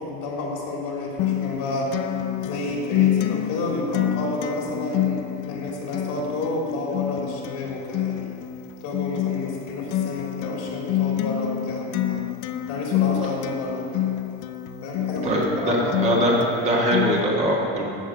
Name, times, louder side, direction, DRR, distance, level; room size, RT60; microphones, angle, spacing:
voice 1, 0.0-8.3 8.8-12.2 12.7-14.0 14.8-16.3, left 2 dB, 75° left, -2 dB, 3.4 m, -30 dB
Acoustic guitar, 1.2-17.2, left 11 dB, 50° left, 0.6 m, -27 dB
voice 2, 15.2-17.9, equal, 25° right, -3 dB, 1.7 m, -22 dB
14.5 x 5.5 x 7.8 m, 2.6 s
cardioid pair, 175°, 30 cm